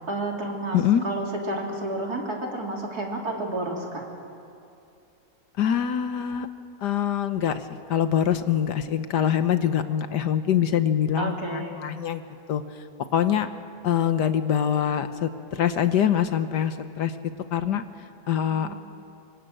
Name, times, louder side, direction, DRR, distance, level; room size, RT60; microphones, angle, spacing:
voice 1, 0.1-4.0 11.2-11.8 18.5-18.8, right 2 dB, 55° right, 0 dB, 3.7 m, -31 dB
voice 2, 5.6-6.5 6.8-12.2 12.5-12.6 13.1-13.5 13.8-17.1 17.5-17.8 18.3-18.7, left 9 dB, 70° left, 10 dB, 1.5 m, -24 dB
26.0 x 25.0 x 7.7 m, 2.6 s
omnidirectional pair, 1.9 m